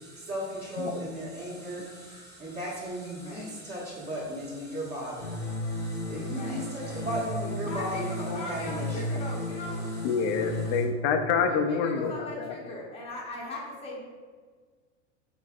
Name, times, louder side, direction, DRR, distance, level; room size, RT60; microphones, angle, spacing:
voice 1, 0.0-9.1, right 1 dB, 25° right, -9 dB, 1.2 m, -36 dB
sound 1, 5.2-10.8, left 1 dB, 70° left, 0.9 m, -34 dB
voice 2, 6.3-7.1 7.6-9.8 11.4-14.0, left 2 dB, 15° left, -4 dB, 0.8 m, -40 dB
voice 3, 10.0-12.5, left 6 dB, 50° left, 6 dB, 0.5 m, -27 dB
4.2 x 4.0 x 2.4 m, 1.5 s
supercardioid pair, 115°, 36 cm